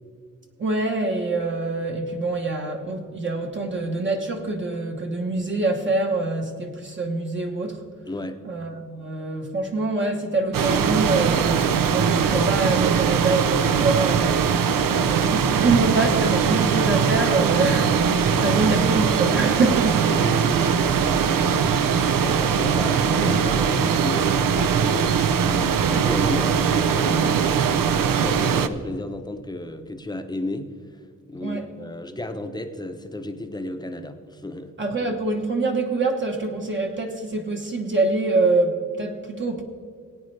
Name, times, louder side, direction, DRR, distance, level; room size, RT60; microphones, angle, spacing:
voice 1, 0.6-7.8 8.4-14.4 15.1-20.0 31.4-31.7 34.8-39.6, right 3 dB, 35° right, 1 dB, 1.0 m, -25 dB
voice 2, 8.1-8.4 18.3-18.6 20.1-21.6 21.9-30.7 31.3-34.7, left 1 dB, 15° left, 7 dB, 0.8 m, -33 dB
sound 1, 10.5-28.7, right 7 dB, 85° right, 0.7 m, -21 dB
18.0 x 9.4 x 3.3 m, 2.2 s
wide cardioid pair, 150°, 32 cm